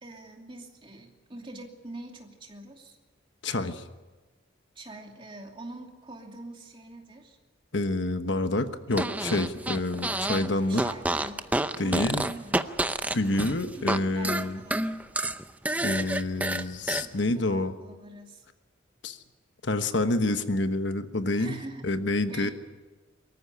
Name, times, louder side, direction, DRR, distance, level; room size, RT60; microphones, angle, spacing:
voice 1, 0.0-3.0 4.7-7.4 10.7-11.5 11.8-12.6 13.7-15.0 17.0-18.5 21.3-22.5, right 2 dB, 25° right, 2 dB, 2.7 m, -44 dB
voice 2, 3.4-3.8 7.7-10.8 11.8-12.3 13.1-14.6 15.8-17.7 19.0-19.2 19.6-22.5, left 2 dB, 65° left, 9 dB, 1.2 m, -28 dB
Fart, 8.9-10.5 10.7-14.0 14.2-17.0, right 1 dB, 10° right, 0.6 m, -29 dB
23.5 x 14.5 x 9.8 m, 1.2 s
head